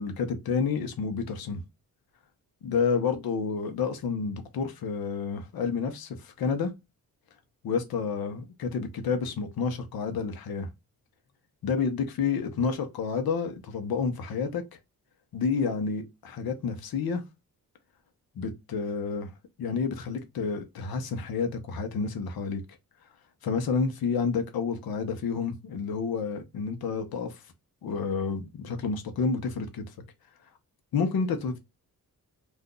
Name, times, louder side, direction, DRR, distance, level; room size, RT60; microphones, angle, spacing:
voice 1, 0.0-1.6 2.6-6.7 7.6-10.7 11.6-14.6 15.3-17.2 18.3-19.3 19.6-22.6 23.4-27.4 27.8-29.8 30.9-31.6, left 5 dB, 80° left, 0.9 m, -29 dB
2.6 x 2.3 x 3.7 m
cardioid pair, 90°, 36 cm